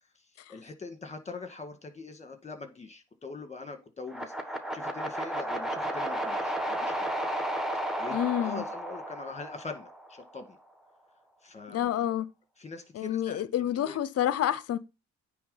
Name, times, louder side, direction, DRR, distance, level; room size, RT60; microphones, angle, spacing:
voice 1, 0.5-4.3 4.7-7.1 8.0-10.6 11.4-12.2 12.6-14.0, left 3 dB, 20° left, 1.8 m, -43 dB
sound 1, 4.1-10.2, right 1 dB, ahead, 1.2 m, -33 dB
voice 2, 8.1-8.6 11.7-12.3 12.9-14.8, left 11 dB, 55° left, 0.6 m, -28 dB
9.4 x 3.5 x 5.5 m
cardioid pair, 90°, 30 cm